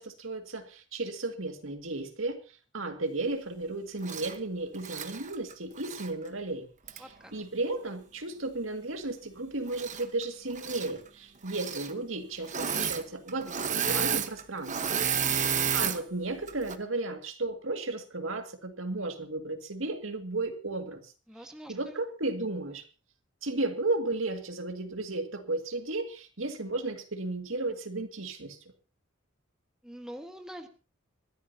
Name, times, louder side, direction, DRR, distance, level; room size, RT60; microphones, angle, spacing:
voice 1, 0.0-6.7 6.9-15.0 15.4-21.1 21.4-22.8 23.4-28.6, right 2 dB, 70° right, 5 dB, 2.2 m, -34 dB
Engine / Mechanisms, 4.0-4.3 4.8-6.1 6.9-7.0 9.7-10.2 10.5-10.9 11.5-11.9 12.4-13.0 13.3-16.0 16.5-16.8, right 7 dB, 40° right, 1.2 m, -31 dB
voice 2, 7.0-7.3 15.2-15.5 21.3-22.0 29.8-30.7, equal, 5° right, 4 dB, 1.6 m, -45 dB
25.5 x 13.0 x 2.9 m, 0.34 s
head